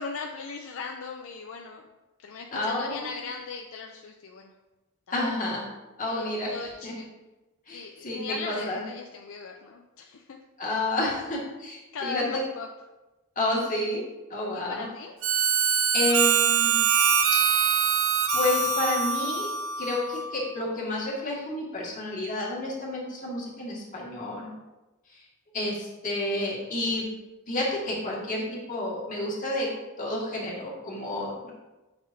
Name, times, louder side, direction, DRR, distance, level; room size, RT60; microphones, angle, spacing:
voice 1, 0.0-1.8 2.2-4.5 5.1-5.3 6.1-7.1 7.7-10.4 11.9-12.7 14.5-15.1, left 4 dB, 65° left, 3 dB, 0.5 m, -38 dB
voice 2, 2.5-3.1 5.1-5.6 6.0-6.5 6.8-6.9 7.7-8.8 10.6-12.4 13.4-14.0 14.3-14.9 15.9-16.8 17.4-17.5 18.3-19.5 19.8-24.5 25.1-25.2 25.5-27.1 27.5-29.7 30.0-31.5, left 1 dB, 40° left, -4 dB, 1.9 m, -30 dB
Harmonica, 15.2-20.4, right 6 dB, 65° right, 0.6 m, -24 dB
9.1 x 6.1 x 2.7 m, 1.1 s
head